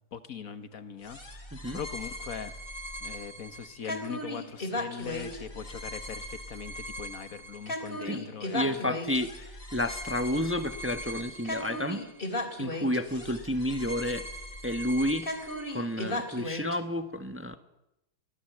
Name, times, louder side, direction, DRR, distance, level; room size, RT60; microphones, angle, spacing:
voice 1, 0.1-1.2 1.7-2.5 3.0-9.0, left 7 dB, 60° left, 11 dB, 1.8 m, -40 dB
sound 1, 1.0-16.8, left 1 dB, 35° left, 3.3 m, -37 dB
voice 2, 8.5-12.0 12.6-14.3 14.6-15.3 15.7-17.6, left 1 dB, 10° right, 8 dB, 1.1 m, -30 dB
23.5 x 17.5 x 7.9 m, 0.88 s
omnidirectional pair, 1.7 m